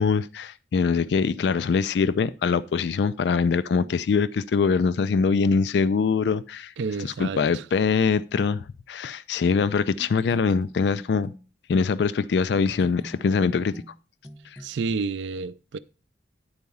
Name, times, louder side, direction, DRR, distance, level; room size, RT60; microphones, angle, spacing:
voice 1, 0.0-6.7 7.0-11.3 11.7-13.7 14.5-14.6, left 5 dB, 70° left, 0.3 m, -23 dB
voice 2, 6.8-7.7 14.6-15.8, right 4 dB, 80° right, 0.4 m, -30 dB
sound 1, 10.0-11.5 12.7-15.0, equal, 5° right, 0.8 m, -44 dB
9.6 x 4.7 x 5.3 m
head